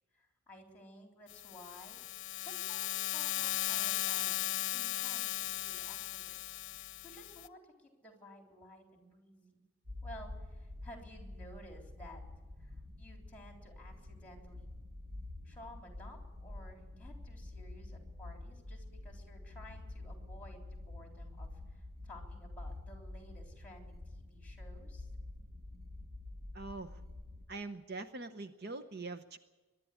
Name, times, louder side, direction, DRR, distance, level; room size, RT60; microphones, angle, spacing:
voice 1, 0.1-9.6 10.0-12.2 12.6-14.7 15.4-25.1, equal, 5° left, 3 dB, 3.6 m, -55 dB
sound 1, 1.3-7.5, left 14 dB, 60° left, 0.7 m, -37 dB
sound 2, 9.9-27.5, left 2 dB, 65° right, 2.0 m, -48 dB
voice 2, 26.5-27.0 27.5-29.4, right 3 dB, 50° right, 10 dB, 0.8 m, -43 dB
22.5 x 11.5 x 10.0 m, 1.2 s
head